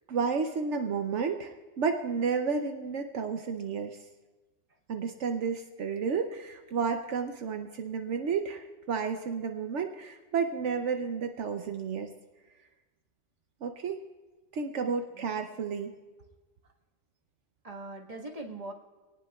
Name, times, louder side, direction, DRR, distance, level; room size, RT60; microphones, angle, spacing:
voice 1, 0.1-4.0 4.9-12.1 13.6-14.0 14.5-15.9, right 5 dB, 75° right, 6 dB, 1.1 m, -31 dB
voice 2, 14.8-15.4 17.6-18.7, right 2 dB, 30° right, -1 dB, 1.6 m, -42 dB
24.5 x 18.5 x 2.4 m, 1.3 s
omnidirectional pair, 1.3 m